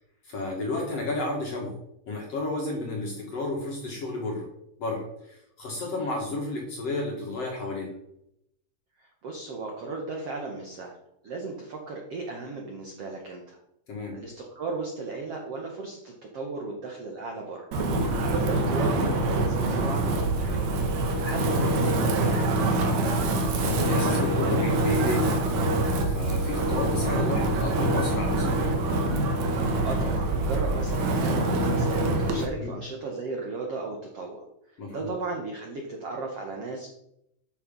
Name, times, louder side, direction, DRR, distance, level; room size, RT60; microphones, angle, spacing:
voice 1, 0.2-1.8 2.1-4.5 4.8-7.9 13.9-14.2 18.0-18.2 23.7-25.4 25.7-28.8 32.6-32.7 34.8-35.1, left 2 dB, 50° left, 0 dB, 2.0 m, -32 dB
voice 2, 9.0-10.9 11.2-13.6 14.1-17.7 18.3-20.7 21.2-22.6 29.7-34.4 34.9-36.9, right 3 dB, 90° right, 1 dB, 1.3 m, -35 dB
Wind, 17.7-32.5, right 2 dB, 65° right, 1.8 m, -25 dB
12.5 x 6.1 x 5.4 m, 0.80 s
omnidirectional pair, 5.0 m